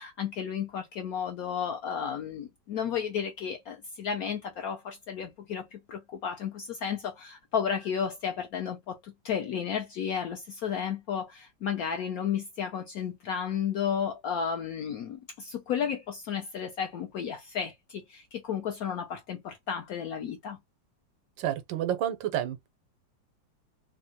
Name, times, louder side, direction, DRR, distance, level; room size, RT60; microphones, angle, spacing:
voice 1, 0.0-20.6, left 7 dB, 75° left, 0.8 m, -33 dB
voice 2, 21.4-22.7, right 11 dB, 90° right, 1.4 m, -30 dB
3.5 x 2.1 x 2.7 m
omnidirectional pair, 2.0 m